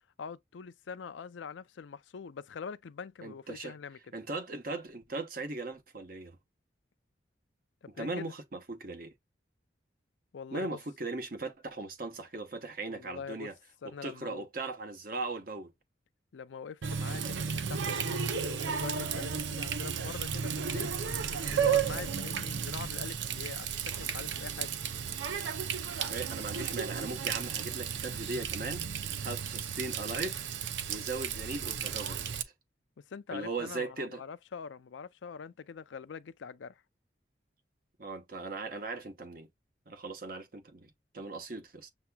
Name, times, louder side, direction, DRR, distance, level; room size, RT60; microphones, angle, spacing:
voice 1, 0.2-4.0 8.0-8.3 10.3-10.8 12.9-13.5 13.8-14.5 16.3-20.9 21.6-24.7 33.1-36.8, left 6 dB, 90° left, 0.4 m, -43 dB
voice 2, 3.2-3.7 4.1-6.4 7.9-9.1 10.5-13.5 13.8-15.7 26.0-28.8 29.2-30.4 30.9-32.4 33.3-34.2 38.0-39.5 39.9-41.9, right 3 dB, 50° right, 0.9 m, -38 dB
Water tap faucet, 16.8-32.4, right 7 dB, 85° right, 0.6 m, -34 dB
6.9 x 2.8 x 2.3 m
head